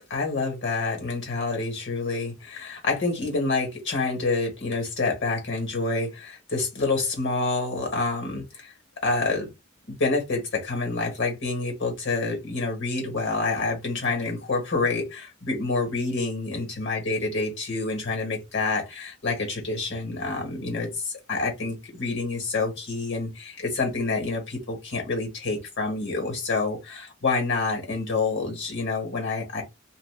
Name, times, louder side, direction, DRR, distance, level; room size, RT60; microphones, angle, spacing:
voice 1, 0.1-8.7 9.0-9.5 9.9-29.6, left 3 dB, 60° left, 1.4 m, -27 dB
2.5 x 2.3 x 3.4 m
head